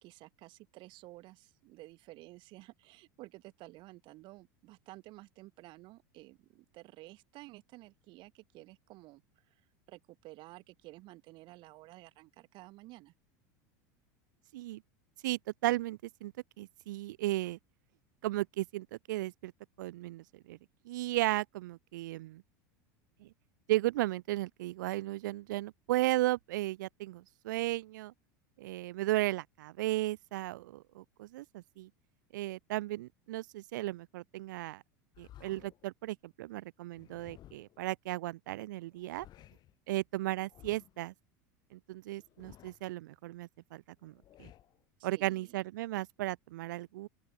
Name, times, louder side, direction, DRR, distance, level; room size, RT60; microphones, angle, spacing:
voice 1, 0.0-9.2 9.5-9.6 9.9-13.1 45.0-45.6, right 20 dB, 55° right, 1.7 m, -53 dB
voice 2, 15.2-17.6 18.2-19.5 19.8-20.6 20.9-22.4 23.2-23.3 23.7-28.1 28.6-31.9 32.3-34.8 35.2-39.3 39.9-41.1 41.7-44.5 45.0-47.1, right 17 dB, 80° right, 0.4 m, -35 dB
sound 1, 35.1-35.9 36.9-37.8 38.9-39.8 40.5-41.1 42.1-43.0 44.0-44.8, left 13 dB, 45° left, 4.7 m, -57 dB
open air
hypercardioid pair, 105°, 10 cm